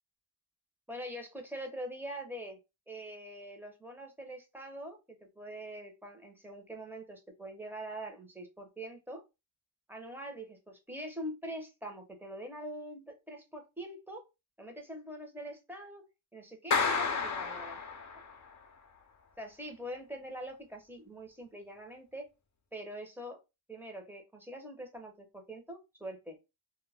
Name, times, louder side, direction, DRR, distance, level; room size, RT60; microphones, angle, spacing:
voice 1, 0.9-2.6 2.9-9.2 9.9-10.6 10.9-14.2 14.6-16.1 16.3-17.8 19.4-22.3 22.7-23.4 23.7-26.4, right 1 dB, 5° right, 2 dB, 0.8 m, -44 dB
Clapping, 16.7-18.4, left 5 dB, 45° left, 0.6 m, -31 dB
2.3 x 2.1 x 3.3 m, 0.25 s
cardioid pair, 90°, 39 cm